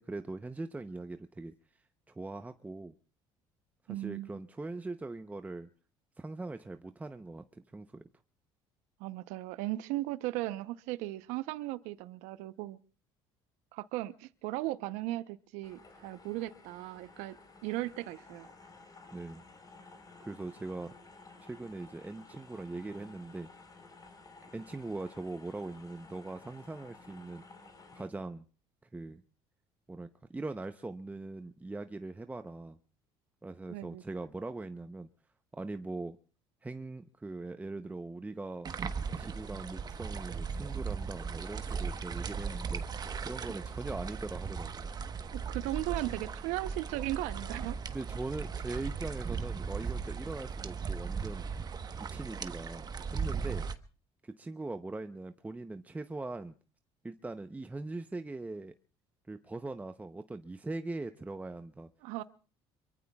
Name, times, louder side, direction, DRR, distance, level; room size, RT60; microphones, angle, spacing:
voice 1, 0.0-1.5 2.1-2.9 3.9-5.7 6.2-8.0 19.1-19.4 20.2-20.9 21.4-23.5 24.5-27.4 27.9-28.4 28.9-29.2 29.9-32.8 33.4-35.1 35.5-36.2 36.6-38.7 39.2-42.8 43.2-44.9 47.9-51.5 52.1-53.6 54.2-56.5 57.0-58.7 59.3-61.9, right 2 dB, 15° right, 0.7 m, -41 dB
voice 2, 3.9-4.4 9.0-12.8 13.7-17.4 17.6-18.5 33.7-34.0 45.3-47.8 62.0-62.2, right 17 dB, 80° right, 0.8 m, -37 dB
sound 1, 15.6-28.1, left 3 dB, 30° left, 3.9 m, -54 dB
sound 2, 38.6-53.7, right 5 dB, 35° right, 1.1 m, -37 dB
27.0 x 23.0 x 2.3 m
supercardioid pair, 85°, 12 cm